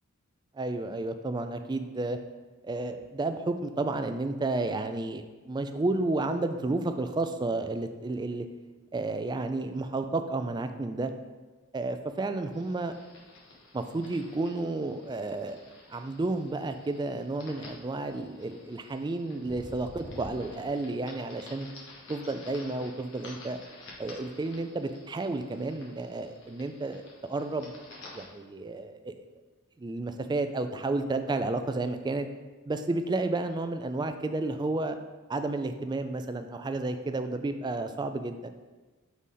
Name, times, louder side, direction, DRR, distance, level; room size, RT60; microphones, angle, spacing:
voice 1, 0.5-2.2 2.6-8.5 8.9-11.1 11.7-12.9 13.7-15.6 15.9-21.7 22.1-23.6 24.0-27.8 28.1-29.1 29.8-32.3 32.7-35.0 35.3-38.5, right 2 dB, 20° right, 8 dB, 0.3 m, -31 dB
sound 1, 12.5-28.3, left 2 dB, 60° left, 1.3 m, -50 dB
5.5 x 4.1 x 4.8 m, 1.3 s
head